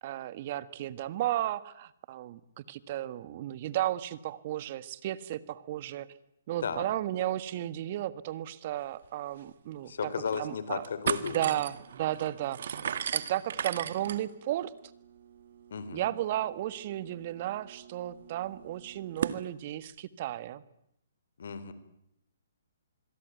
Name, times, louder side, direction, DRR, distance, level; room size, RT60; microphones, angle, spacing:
voice 1, 0.0-6.1 6.5-9.9 10.4-10.8 11.2-12.8 13.1-14.7 15.9-20.6, right 13 dB, 45° right, 16 dB, 1.6 m, -34 dB
sound 1, 9.0-9.1 9.4-9.5 10.0-10.5 10.8-19.4, right 8 dB, 65° right, 1.8 m, -38 dB
voice 2, 9.9-11.5 15.7-16.1 21.4-21.7, left 6 dB, 70° left, 14 dB, 3.9 m, -34 dB
26.5 x 22.0 x 9.4 m, 0.76 s
hypercardioid pair, 140°, 0 cm